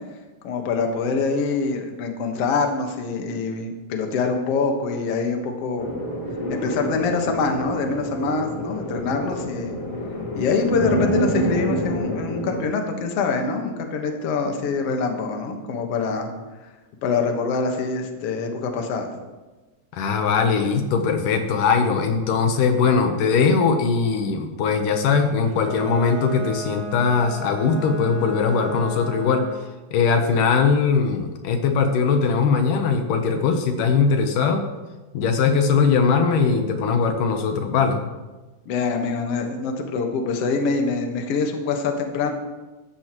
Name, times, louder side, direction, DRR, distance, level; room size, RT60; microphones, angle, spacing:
voice 1, 0.4-5.9 6.5-9.8 10.4-16.3 17.0-19.1 38.7-42.3, left 4 dB, 55° left, 3 dB, 2.0 m, -25 dB
sound 1, 5.8-12.6, equal, 30° left, 1.6 m, -27 dB
sound 2, 5.9-15.8, right 15 dB, 65° right, 2.5 m, -44 dB
voice 2, 19.9-29.4 29.9-34.6 35.1-38.1, left 5 dB, 75° left, 5 dB, 2.5 m, -20 dB
Bowed string instrument, 25.4-29.7, right 4 dB, ahead, 3.0 m, -35 dB
16.0 x 13.0 x 3.0 m, 1.2 s
omnidirectional pair, 3.8 m